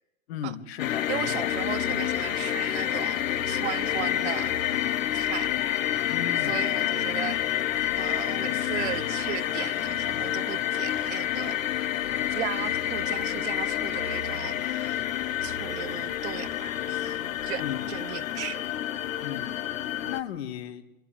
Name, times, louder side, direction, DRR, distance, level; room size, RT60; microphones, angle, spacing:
voice 1, 0.3-1.1 1.4-1.5 6.1-6.6 17.6-17.9 19.2-19.6 20.0-20.8, left 9 dB, 50° left, 2.0 m, -35 dB
sound 1, 0.8-20.2, left 12 dB, 70° left, 1.1 m, -28 dB
voice 2, 1.1-5.5 6.4-7.4 7.9-11.6 12.3-15.0 15.4-18.6, right 14 dB, 55° right, 1.0 m, -37 dB
sound 2, 1.5-18.0, right 6 dB, 90° right, 1.3 m, -48 dB
25.5 x 13.0 x 8.9 m
hypercardioid pair, 150°, 41 cm